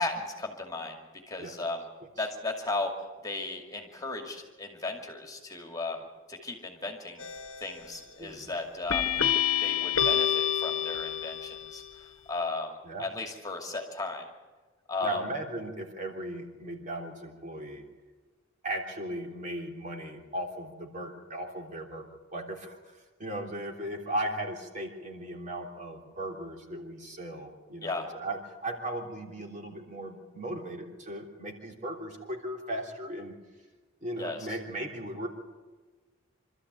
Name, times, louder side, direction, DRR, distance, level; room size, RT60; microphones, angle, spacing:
voice 1, 0.0-1.8 2.2-3.0 3.2-6.0 6.3-7.3 7.6-9.2 9.6-14.2 14.9-15.2 27.8-28.1 34.2-34.4, left 3 dB, 20° left, 2 dB, 2.4 m, -35 dB
sound 1, 7.2-7.7 8.9-11.7, left 10 dB, 85° left, 1.1 m, -27 dB
voice 2, 8.2-8.5 12.8-13.1 15.0-17.8 18.6-22.9 23.2-33.3 34.0-35.3, right 1 dB, 40° right, 0 dB, 3.2 m, -37 dB
26.0 x 13.5 x 8.2 m, 1.3 s
head